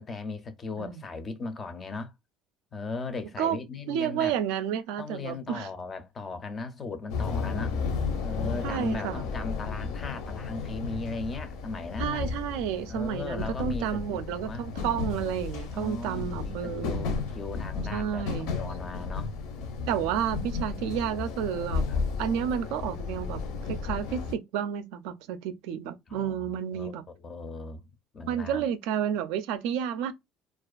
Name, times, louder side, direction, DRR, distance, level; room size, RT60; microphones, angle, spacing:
voice 1, 0.0-2.1 2.7-4.3 5.0-7.8 8.2-12.2 12.9-14.6 15.7-19.3 19.9-20.0 20.7-20.8 21.9-22.0 26.1-26.4 26.7-27.8 28.1-28.6, left 3 dB, 25° left, 0.4 m, -37 dB
voice 2, 3.9-5.7 8.6-9.2 12.0-17.0 17.9-18.5 19.9-21.8 22.2-23.4 23.7-27.0 28.2-30.1, right 9 dB, 80° right, 0.4 m, -31 dB
sound 1, 7.1-24.3, left 4 dB, 75° left, 0.6 m, -33 dB
2.4 x 2.4 x 2.3 m
cardioid pair, 155°, 0 cm